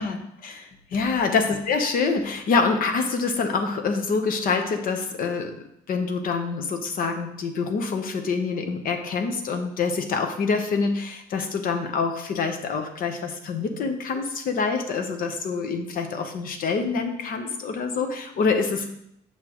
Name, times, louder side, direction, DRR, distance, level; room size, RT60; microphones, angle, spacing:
voice 1, 0.0-5.5 5.9-18.9, left 4 dB, 55° left, 6 dB, 1.0 m, -26 dB
7.3 x 5.9 x 3.1 m, 0.76 s
cardioid pair, 110°, 17 cm